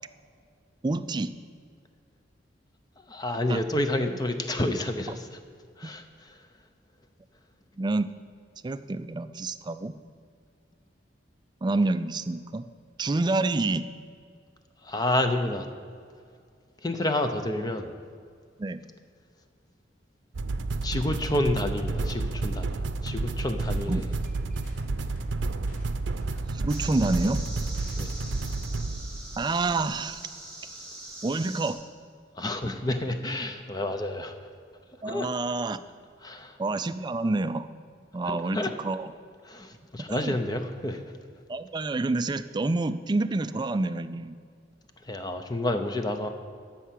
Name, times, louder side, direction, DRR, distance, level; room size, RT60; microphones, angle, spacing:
voice 1, 0.8-1.3 3.5-3.6 5.8-5.9 7.8-8.1 8.6-9.9 11.6-12.7 13.0-13.9 18.6-18.8 23.9-24.1 26.5-27.4 29.4-30.2 31.2-31.8 35.0-35.8 36.6-37.7 38.1-39.1 40.1-40.4 41.5-44.4, right 2 dB, 25° right, 12 dB, 0.3 m, -28 dB
voice 2, 3.1-5.4 5.8-6.4 14.8-15.7 16.8-17.9 20.8-24.1 28.0-28.1 32.4-34.4 35.1-35.3 36.2-36.6 38.3-38.7 39.4-41.0 45.0-46.3, left 1 dB, 20° left, 7 dB, 0.7 m, -29 dB
sound 1, 20.3-30.0, right 3 dB, 80° right, 0.6 m, -31 dB
sound 2, 23.4-28.3, equal, 45° left, 2.2 m, -51 dB
sound 3, 26.7-31.7, right 1 dB, 5° left, 2.4 m, -43 dB
12.5 x 5.7 x 7.6 m, 2.2 s
head